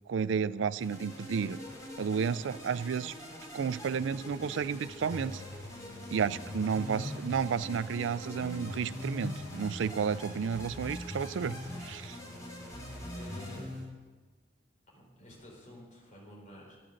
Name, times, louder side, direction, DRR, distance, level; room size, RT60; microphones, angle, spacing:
voice 1, 0.1-1.6 2.0-3.1 3.5-5.4 6.1-12.2, right 6 dB, 75° right, 17 dB, 0.4 m, -32 dB
sound 1, 0.8-13.6, left 1 dB, 20° left, 2.7 m, -46 dB
sound 2, 5.1-13.8, left 1 dB, 5° right, 4.9 m, -43 dB
voice 2, 13.1-13.7 14.9-16.8, left 1 dB, 40° left, -2 dB, 4.0 m, -51 dB
12.0 x 8.8 x 6.4 m, 1.4 s
head